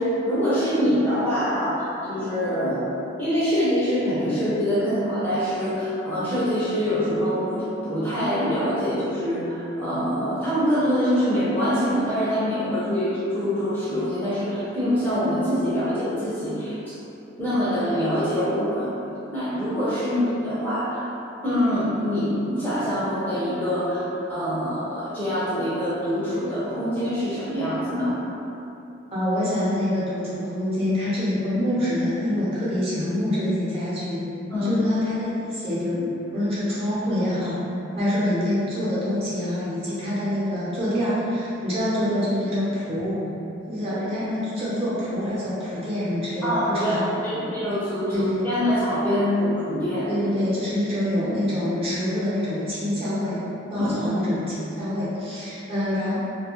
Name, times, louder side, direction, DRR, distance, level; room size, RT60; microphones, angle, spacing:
voice 1, 0.0-2.9 3.2-17.0 17.4-18.9 19.3-21.1 21.4-28.1 34.5-34.8 46.4-50.1 53.8-53.9, equal, 10° left, -12 dB, 0.6 m, -24 dB
voice 2, 29.1-34.3 34.6-36.0 36.3-37.6 37.9-43.2 43.7-47.0 47.4-47.5 48.1-48.4 50.1-53.4 53.7-56.2, left 1 dB, 30° right, -10 dB, 0.7 m, -26 dB
2.7 x 2.3 x 2.9 m, 2.8 s
head